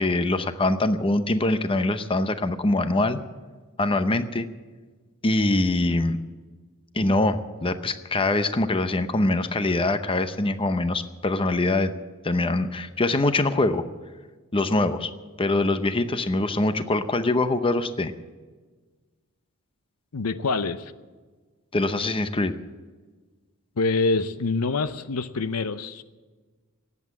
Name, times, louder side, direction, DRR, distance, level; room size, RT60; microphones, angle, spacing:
voice 1, 0.0-3.2 3.8-4.5 5.2-6.2 6.9-11.9 12.2-13.8 14.5-15.1 15.4-18.1 21.7-22.5, left 2 dB, 25° left, 10 dB, 0.7 m, -23 dB
voice 2, 20.1-20.9 23.8-26.0, left 3 dB, 80° left, 13 dB, 0.7 m, -25 dB
18.5 x 8.3 x 8.3 m, 1.4 s
head